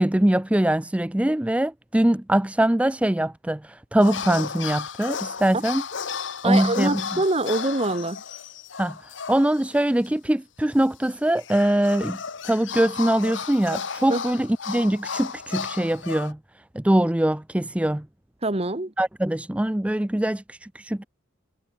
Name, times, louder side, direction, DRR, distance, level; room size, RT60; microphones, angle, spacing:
voice 1, 0.0-5.8 6.4-7.0 8.8-12.2 12.4-16.4 16.7-18.1 19.0-21.0, right 1 dB, 5° right, 0.4 m, -22 dB
sound 1, 4.0-9.7 10.1-10.2 11.0-16.3, left 6 dB, 70° left, 1.1 m, -34 dB
voice 2, 6.4-8.2 14.1-14.2 18.4-18.9, right 2 dB, 30° right, 1.6 m, -24 dB
head